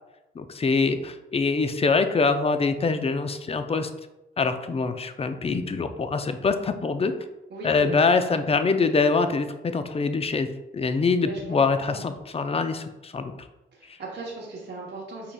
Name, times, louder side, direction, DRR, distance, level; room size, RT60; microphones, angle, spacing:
voice 1, 0.4-3.9 4.4-7.1 7.6-10.5 10.7-13.3, left 4 dB, 30° left, 9 dB, 0.4 m, -24 dB
voice 2, 7.5-8.0 10.9-11.0 11.2-12.1 13.7-15.3, right 2 dB, 60° right, -4 dB, 0.9 m, -37 dB
5.6 x 4.1 x 2.2 m, 0.99 s
cardioid pair, 75°, 21 cm